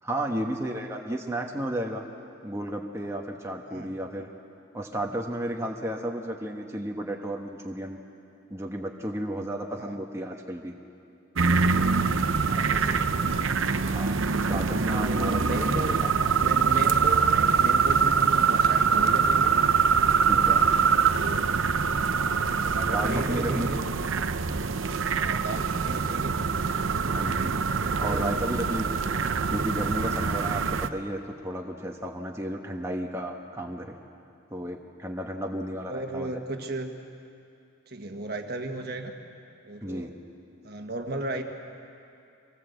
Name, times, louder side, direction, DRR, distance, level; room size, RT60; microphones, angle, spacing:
voice 1, 0.0-2.0 2.4-4.3 4.7-8.0 8.5-10.7 13.9-16.1 20.3-20.7 22.9-23.9 27.1-27.5 28.0-29.0 29.5-33.9 34.5-36.4 39.8-40.1, right 1 dB, 15° right, 1 dB, 1.2 m, -33 dB
sound 1, 11.4-30.9, right 5 dB, 85° right, 0.8 m, -24 dB
voice 2, 12.5-13.3 14.8-19.5 20.9-21.6 22.5-23.8 25.1-26.3 27.8-28.4 35.9-36.9 37.9-39.1 39.6-40.1 40.6-41.4, right 2 dB, 50° right, 4 dB, 1.5 m, -35 dB
25.0 x 18.0 x 8.1 m, 2.6 s
head